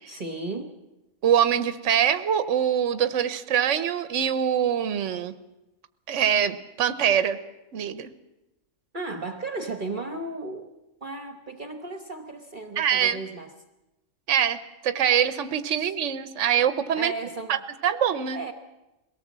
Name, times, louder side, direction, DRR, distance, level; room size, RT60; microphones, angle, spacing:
voice 1, 0.1-0.7 8.9-10.7 11.0-13.5 15.8-15.9 16.9-17.6 18.3-18.5, right 3 dB, 40° right, 6 dB, 1.3 m, -35 dB
voice 2, 1.2-5.3 6.1-7.4 7.7-8.1 12.8-13.2 14.3-17.1 17.5-17.6 17.8-18.4, right 9 dB, 70° right, 12 dB, 1.2 m, -24 dB
22.0 x 18.0 x 7.5 m, 0.99 s
omnidirectional pair, 1.3 m